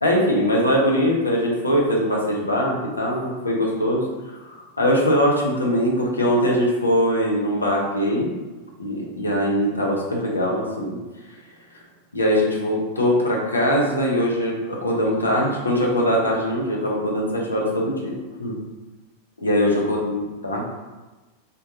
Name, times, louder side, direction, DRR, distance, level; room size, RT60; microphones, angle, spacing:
voice 1, 0.0-8.3 8.8-11.0 12.1-18.1 18.4-18.6 19.4-20.6, equal, 80° left, -2 dB, 0.7 m, -22 dB
3.7 x 2.5 x 2.7 m, 1.2 s
figure-of-eight pair, 90°, 0 cm